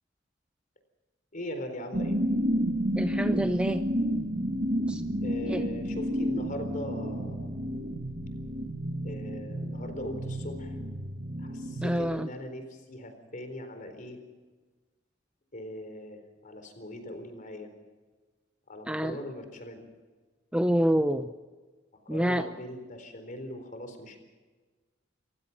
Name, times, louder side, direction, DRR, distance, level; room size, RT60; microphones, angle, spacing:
voice 1, 1.3-2.2 5.2-7.5 9.0-10.8 11.4-14.2 15.5-17.7 18.7-19.8 22.1-24.2, left 1 dB, 45° left, 7 dB, 4.1 m, -40 dB
sound 1, 1.9-12.1, equal, 50° right, 1.9 m, -31 dB
voice 2, 3.0-3.8 4.9-5.0 5.5-5.6 11.8-12.3 18.9-19.2 20.5-21.3 22.1-22.5, equal, 5° right, 8 dB, 0.6 m, -27 dB
28.5 x 16.0 x 6.0 m, 1.3 s
head